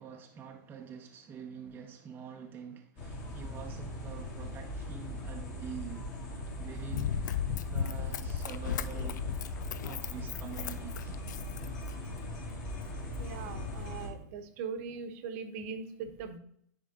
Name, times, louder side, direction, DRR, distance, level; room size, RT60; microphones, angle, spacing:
voice 1, 0.0-6.1 6.6-7.1 7.4-9.3 9.8-11.1, right 7 dB, 20° right, 0.7 m, -46 dB
sound 1, 3.0-14.1, left 1 dB, 45° left, 2.1 m, -40 dB
Run, 6.9-12.2 12.8-12.9, left 9 dB, 70° left, 0.4 m, -36 dB
voice 2, 13.2-16.4, right 5 dB, 50° right, 1.0 m, -40 dB
9.8 x 3.6 x 3.8 m
hypercardioid pair, 130°, 10 cm